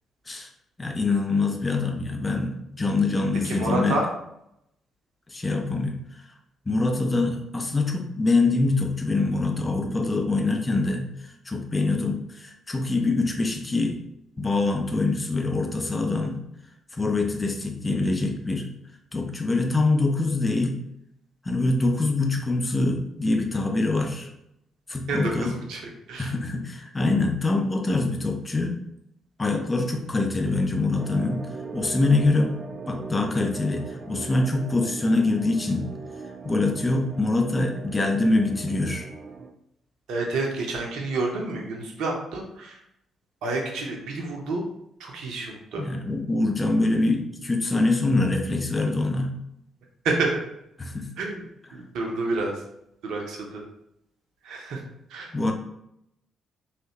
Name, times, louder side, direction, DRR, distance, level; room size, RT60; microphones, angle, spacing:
voice 1, 0.8-4.0 5.3-6.0 6.7-11.1 11.5-14.0 14.4-16.4 16.9-18.7 19.1-20.8 21.5-24.3 24.9-25.5 26.2-28.8 29.4-31.5 31.7-32.6 32.9-35.9 36.4-39.1 45.8-49.3 50.8-51.1 55.3-55.5, left 2 dB, 25° left, 3 dB, 0.6 m, -24 dB
voice 2, 3.4-4.1 25.1-26.3 40.1-42.8 43.4-44.6 45.0-45.9 50.0-50.4 51.2-51.5 51.7-52.6 53.0-53.6 54.4-54.8 55.1-55.3, right 2 dB, 60° right, 0 dB, 0.7 m, -29 dB
sound 1, 31.0-39.5, right 4 dB, 35° right, 0.3 m, -40 dB
3.2 x 2.6 x 2.9 m, 0.79 s
figure-of-eight pair, 40°, 0 cm